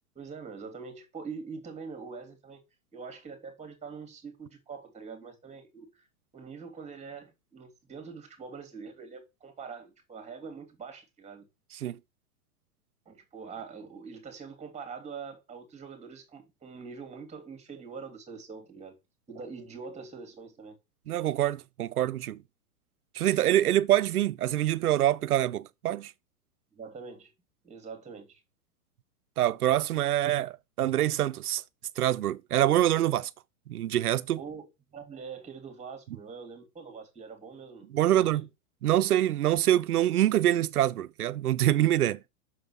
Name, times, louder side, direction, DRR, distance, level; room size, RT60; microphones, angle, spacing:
voice 1, 0.1-2.6 2.9-6.1 6.3-11.5 13.0-19.0 19.3-20.8 26.7-27.3 27.6-28.4 34.4-38.4, right 5 dB, 15° right, 3.1 m, -44 dB
voice 2, 21.1-22.4 23.2-26.1 29.4-31.6 32.0-33.3 33.7-34.4 37.9-38.5 38.8-42.2, right 13 dB, 85° right, 0.7 m, -25 dB
6.3 x 5.4 x 6.1 m
hypercardioid pair, 120°, 43 cm